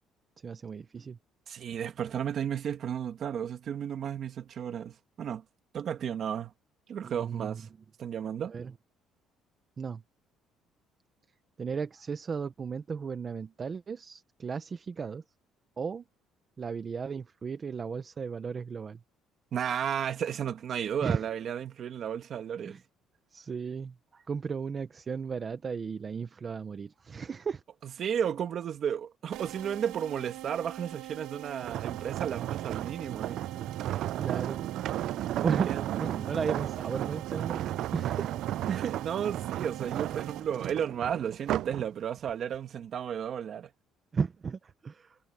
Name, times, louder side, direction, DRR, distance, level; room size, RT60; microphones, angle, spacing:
voice 1, 0.4-1.2 7.0-7.6 8.5-8.7 9.8-10.0 11.6-15.2 15.8-16.0 16.6-19.0 21.0-21.3 22.6-22.8 23.3-27.6 34.2-34.6 35.4-35.7 36.0-38.3 44.1-45.2, right 5 dB, 25° right, 0.9 m, -35 dB
voice 2, 1.5-5.4 5.7-6.5 6.9-7.7 8.0-8.5 19.5-22.8 27.8-33.5 35.7-35.9 38.7-43.7, right 8 dB, 40° right, 2.2 m, -33 dB
sound 1, 29.3-41.0, right 15 dB, 80° right, 3.1 m, -44 dB
sound 2, 31.6-41.8 42.3-42.5, right 12 dB, 55° right, 0.4 m, -34 dB
cardioid pair, 160°, 0 cm